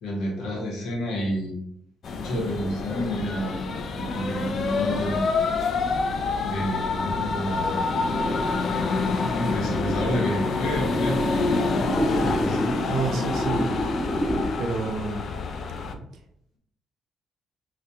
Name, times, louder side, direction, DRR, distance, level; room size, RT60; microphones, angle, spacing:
voice 1, 0.0-1.5 2.1-5.4 6.4-7.8 9.2-11.2 12.2-12.8, equal, 85° left, -1 dB, 1.0 m, -30 dB
sound 1, 2.0-15.9, left 4 dB, 60° left, 0.3 m, -27 dB
sound 2, 2.3-14.5, equal, 5° left, 0.6 m, -32 dB
voice 2, 12.9-13.7 14.6-15.3, right 3 dB, 70° right, 4 dB, 0.6 m, -28 dB
4.2 x 2.5 x 2.7 m, 0.72 s
cardioid pair, 90°, 0 cm